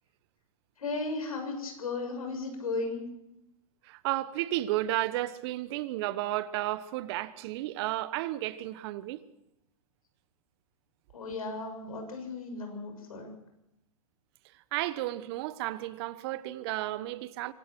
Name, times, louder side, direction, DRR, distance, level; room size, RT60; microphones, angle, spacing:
voice 1, 0.8-3.1 11.1-13.3, left 3 dB, 90° left, 7.4 m, -35 dB
voice 2, 3.8-9.2 14.7-17.5, right 16 dB, 50° right, 1.1 m, -33 dB
25.0 x 18.0 x 6.1 m
hypercardioid pair, 130°, 18 cm